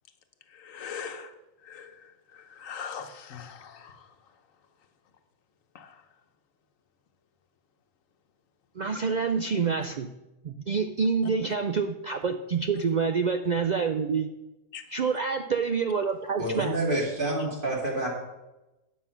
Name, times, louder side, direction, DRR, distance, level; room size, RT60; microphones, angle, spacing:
voice 1, 0.5-1.3 1.6-1.9 2.3-4.0 5.7-5.9 14.7-14.8, left 7 dB, 80° left, 7 dB, 1.3 m, -40 dB
voice 2, 8.8-10.1 10.4-14.3 14.9-16.8, right 5 dB, 60° right, 6 dB, 0.4 m, -27 dB
voice 3, 16.4-18.1, right 1 dB, 40° right, -3 dB, 2.7 m, -28 dB
9.9 x 6.5 x 5.7 m, 0.99 s
omnidirectional pair, 1.4 m